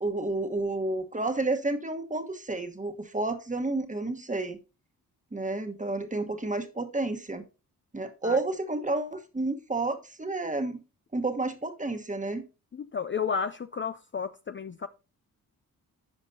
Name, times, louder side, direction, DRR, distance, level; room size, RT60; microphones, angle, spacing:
voice 1, 0.0-4.6 5.3-7.4 7.9-10.8 11.1-12.4, right 2 dB, 20° right, 7 dB, 1.3 m, -30 dB
voice 2, 12.7-14.9, left 6 dB, 30° left, 11 dB, 0.5 m, -32 dB
15.0 x 5.2 x 2.8 m, 0.30 s
cardioid pair, 65°, 37 cm